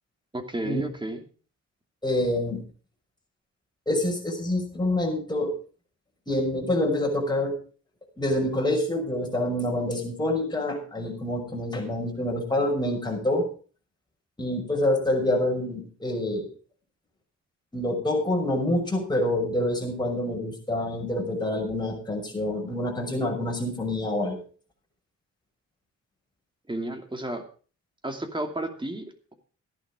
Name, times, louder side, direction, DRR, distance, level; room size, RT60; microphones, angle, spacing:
voice 1, 0.3-1.2 26.7-27.4 28.0-29.3, right 1 dB, 15° right, 5 dB, 2.6 m, -32 dB
voice 2, 2.0-2.6 3.9-5.5 6.3-7.5 8.2-13.5 14.4-16.5 17.7-24.4, left 1 dB, 15° left, 0 dB, 6.0 m, -26 dB
14.5 x 11.0 x 4.9 m, 0.39 s
cardioid pair, 105°, 29 cm